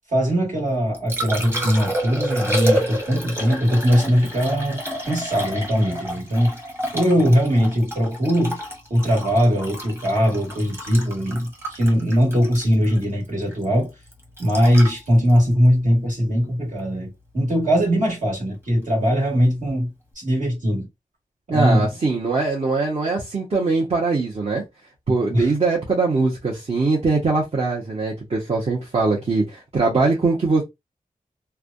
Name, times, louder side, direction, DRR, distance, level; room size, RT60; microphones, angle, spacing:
voice 1, 0.1-4.8 5.1-6.6 6.9-8.6 8.9-13.9 14.4-20.9 21.5-21.9 25.3-25.5, equal, 60° right, 1.8 m, -20 dB
Liquid, 0.7-16.8 19.6-19.7, right 1 dB, 15° right, 1.2 m, -30 dB
voice 2, 21.5-24.6 25.1-30.6, right 3 dB, 45° right, 1.0 m, -21 dB
3.2 x 2.2 x 2.5 m
wide cardioid pair, 100°, 14 cm